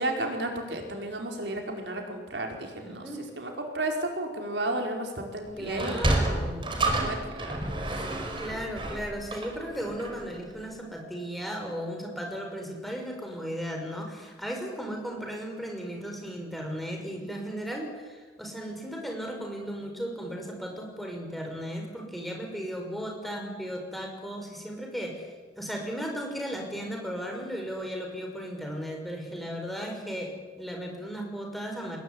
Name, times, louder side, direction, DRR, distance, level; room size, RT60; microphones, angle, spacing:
voice 1, 0.0-3.1 3.4-6.1 6.8-8.0 20.1-20.2 26.9-27.1, right 1 dB, 70° right, 2 dB, 4.9 m, -33 dB
voice 2, 2.8-3.2 5.5-6.8 8.4-32.0, equal, ahead, 1 dB, 5.8 m, -36 dB
Sliding door, 5.7-10.3, right 1 dB, 30° right, 4.9 m, -29 dB
27.5 x 21.0 x 9.9 m, 1.4 s
head